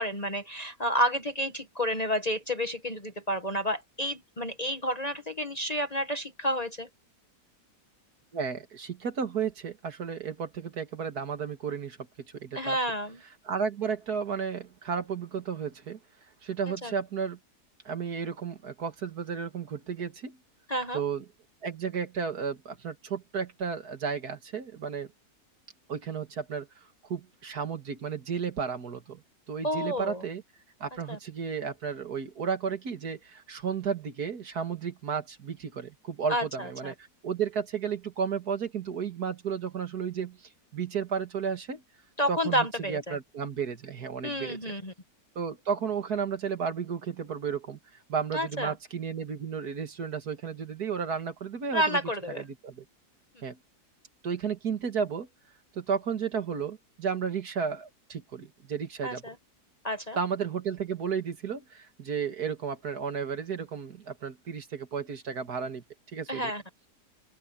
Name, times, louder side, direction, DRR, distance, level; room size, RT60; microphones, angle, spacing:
voice 1, 0.0-6.9 12.5-13.2 16.8-16.9 20.7-21.0 29.6-30.2 31.1-31.2 36.3-36.9 42.2-43.2 44.2-44.9 48.3-48.7 51.7-52.4 59.0-59.3 59.8-60.2 66.3-66.6, equal, 25° left, 1.2 m, -30 dB
voice 2, 8.3-12.0 12.3-12.8 13.4-16.0 16.4-17.4 17.9-20.4 20.9-21.2 21.6-25.1 25.9-26.7 27.1-29.2 29.5-30.4 30.8-36.9 37.2-40.4 40.7-41.8 42.3-44.7 45.4-47.8 48.1-52.0 52.3-52.8 53.4-53.6 54.2-55.3 55.7-59.2 60.2-65.8 66.1-66.5, right 6 dB, 65° right, 2.4 m, -33 dB
open air
omnidirectional pair, 1.8 m